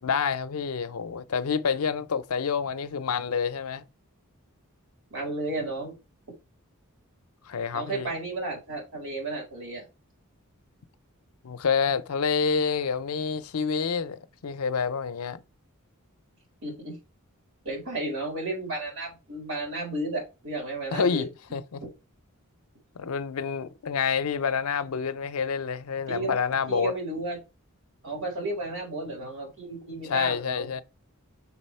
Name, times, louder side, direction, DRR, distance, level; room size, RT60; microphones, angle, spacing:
voice 1, 0.0-3.8 7.5-8.1 11.4-15.4 20.9-21.8 22.9-26.9 30.0-30.8, left 6 dB, 85° left, 0.6 m, -28 dB
voice 2, 5.1-6.0 7.7-9.9 16.6-17.0 17.6-21.3 26.1-26.4 26.7-27.4 28.0-30.8, right 2 dB, 65° right, 4.3 m, -33 dB
5.9 x 4.1 x 4.4 m
head